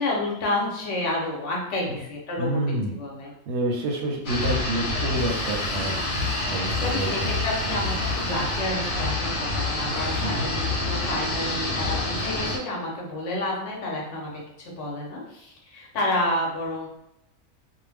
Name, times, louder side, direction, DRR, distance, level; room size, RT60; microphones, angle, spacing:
voice 1, 0.0-3.3 6.8-16.9, left 1 dB, 65° left, -2 dB, 1.0 m, -30 dB
voice 2, 2.4-3.0 3.5-6.0 6.3-7.5 10.2-10.5, right 1 dB, 65° right, 1 dB, 0.8 m, -28 dB
sound 1, 4.2-12.6, left 2 dB, 90° left, 1.1 m, -27 dB
sound 2, 4.4-8.7 9.5-10.6 11.5-11.6, left 1 dB, 45° left, 1.0 m, -45 dB
2.6 x 2.0 x 3.3 m, 0.84 s
omnidirectional pair, 1.4 m